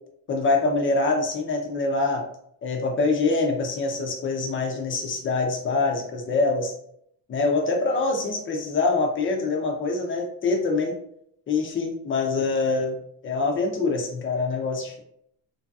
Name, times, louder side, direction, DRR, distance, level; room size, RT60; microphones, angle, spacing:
voice 1, 0.3-2.3 2.6-6.7 7.3-11.0 11.5-13.0 13.2-15.0, left 3 dB, 30° left, 3 dB, 0.5 m, -24 dB
3.0 x 2.7 x 2.3 m, 0.70 s
cardioid pair, 135°, 39 cm